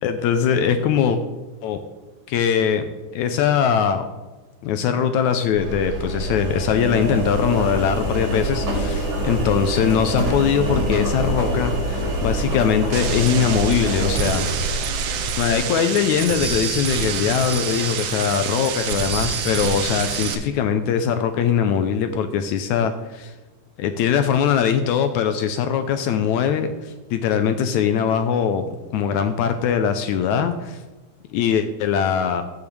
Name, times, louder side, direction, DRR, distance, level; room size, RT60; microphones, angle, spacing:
voice 1, 0.0-1.2 1.6-1.8 2.3-2.9 3.1-4.1 4.6-14.9 15.4-23.3 23.8-28.6 28.9-30.8 31.3-32.4, left 8 dB, 75° left, 9 dB, 1.8 m, -21 dB
Engine, 5.6-15.6, right 1 dB, 65° right, 4.4 m, -25 dB
sound 1, 12.9-20.4, right 7 dB, 85° right, 2.5 m, -27 dB
14.5 x 7.2 x 3.2 m, 1.2 s
omnidirectional pair, 3.7 m